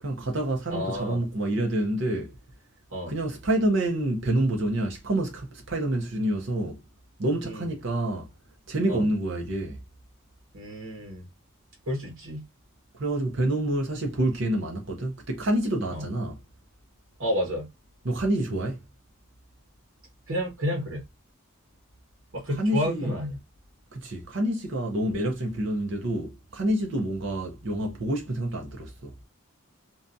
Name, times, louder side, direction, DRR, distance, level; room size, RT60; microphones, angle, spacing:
voice 1, 0.0-2.3 3.1-6.8 7.2-8.3 8.7-9.8 12.9-16.4 18.0-18.8 22.6-23.2 23.9-29.1, right 1 dB, 60° right, 0.6 m, -27 dB
voice 2, 0.7-1.2 2.9-3.1 7.4-7.7 8.9-9.1 10.5-11.2 11.9-12.4 15.9-16.1 17.2-17.7 20.3-21.0 22.3-23.4, equal, 80° right, 1.1 m, -30 dB
2.7 x 2.3 x 2.6 m
head